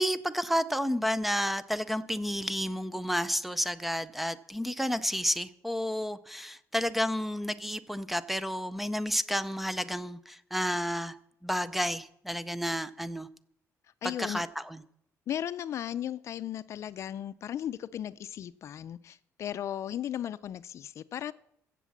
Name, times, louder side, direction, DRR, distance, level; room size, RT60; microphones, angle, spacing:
voice 1, 0.0-11.1 11.4-13.3 14.2-14.8, equal, 5° right, 0.5 m, -31 dB
voice 2, 14.0-14.4 15.3-21.3, left 10 dB, 55° left, 0.4 m, -36 dB
15.5 x 7.5 x 7.2 m
cardioid pair, 145°, 6 cm